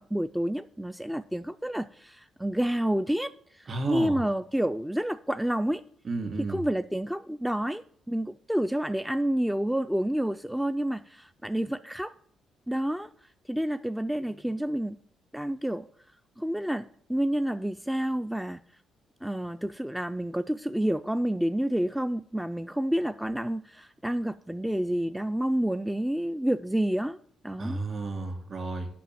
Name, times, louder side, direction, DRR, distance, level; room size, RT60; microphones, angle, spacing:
voice 1, 0.0-5.8 6.4-12.1 12.7-13.1 13.5-15.0 15.3-15.9 16.4-18.6 19.2-27.2 27.4-27.8, right 1 dB, 5° right, 0.3 m, -29 dB
voice 2, 3.7-4.2 6.1-6.6 27.6-28.9, right 3 dB, 45° right, 2.1 m, -32 dB
8.4 x 5.6 x 7.5 m
cardioid pair, 90°, 0 cm